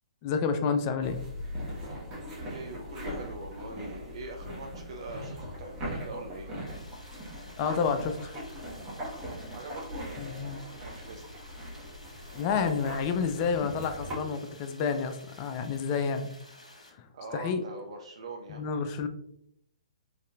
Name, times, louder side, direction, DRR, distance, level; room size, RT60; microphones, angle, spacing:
voice 1, 0.2-1.2 7.6-8.3 10.2-10.6 12.3-16.3 17.0-17.1 17.3-17.6 18.5-19.1, left 5 dB, 30° left, 8 dB, 0.3 m, -29 dB
sound 1, 1.0-14.2, equal, 20° right, 1.1 m, -40 dB
voice 2, 2.5-6.5 9.5-11.6 17.1-18.6, right 2 dB, 55° right, 2 dB, 0.4 m, -43 dB
Stream, 6.7-16.9, left 1 dB, 80° left, 1.0 m, -53 dB
4.0 x 2.5 x 2.4 m, 0.75 s
figure-of-eight pair, 125°, 4 cm